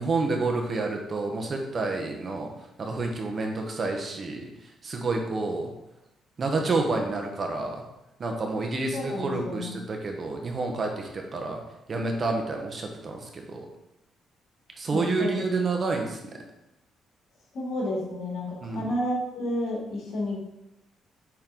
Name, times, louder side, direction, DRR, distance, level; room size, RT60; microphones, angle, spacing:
voice 1, 0.0-2.5 2.8-4.5 4.8-5.7 6.4-7.8 8.2-11.6 11.9-13.7 14.8-16.2 18.6-18.8, right 3 dB, 40° right, 2 dB, 1.1 m, -29 dB
voice 2, 8.9-9.8 14.9-15.4 17.5-20.4, left 1 dB, 70° left, -2 dB, 1.9 m, -31 dB
5.9 x 4.3 x 3.8 m, 0.90 s
cardioid pair, 90°, 0 cm